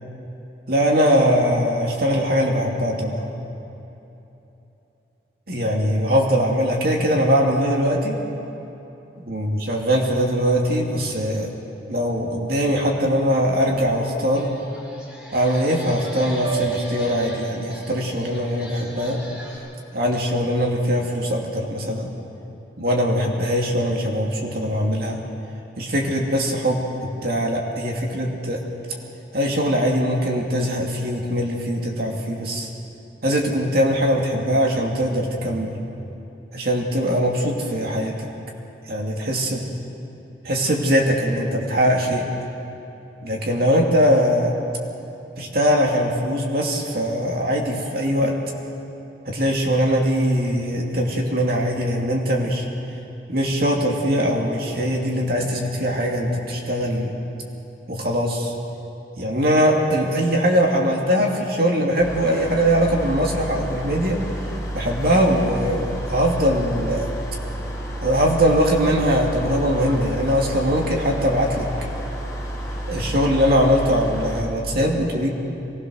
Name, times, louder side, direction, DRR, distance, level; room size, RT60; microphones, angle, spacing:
voice 1, 0.7-3.3 5.5-8.2 9.3-11.5 11.9-14.5 15.3-19.2 19.9-22.1 22.8-25.2 25.8-26.8 27.2-28.6 29.3-32.7 33.2-35.8 36.5-38.3 38.9-39.7 40.4-42.3 43.2-44.5 45.4-48.4 49.2-52.7 53.3-57.1 57.9-58.5 59.2-64.2 64.7-67.1 68.0-71.7 72.9-75.3, equal, 55° right, -1 dB, 2.8 m, -21 dB
Group talking, 13.7-13.8 14.2-19.6, left 1 dB, 5° right, 5.1 m, -41 dB
Piano, 16.4-20.4 20.8-21.2, right 8 dB, 30° right, 2.1 m, -36 dB
sound 1, 62.0-74.4, equal, 15° left, 3.1 m, -30 dB
23.5 x 19.5 x 6.5 m, 3.0 s
head